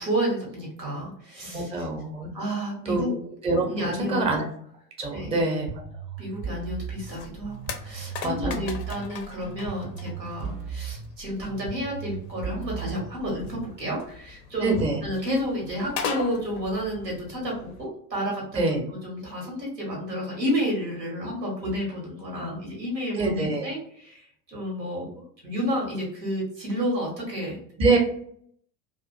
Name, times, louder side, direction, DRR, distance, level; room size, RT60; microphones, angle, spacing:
voice 1, 0.0-1.7 2.3-3.1 3.7-4.4 5.1-5.4 6.2-14.8 15.0-18.7 19.0-27.6, equal, 90° right, -2 dB, 1.0 m, -31 dB
voice 2, 1.5-2.3 2.9-3.2 3.4-4.4 5.0-5.7 8.2-8.7 14.6-15.0 18.5-18.8 23.1-23.7 27.8-28.0, right 2 dB, 15° right, 2 dB, 0.6 m, -25 dB
sound 1, 5.7-13.7, right 6 dB, 55° right, 0.6 m, -37 dB
sound 2, 6.7-17.9, left 6 dB, 35° left, 0.4 m, -40 dB
2.4 x 2.1 x 2.4 m, 0.63 s
figure-of-eight pair, 70°, 48 cm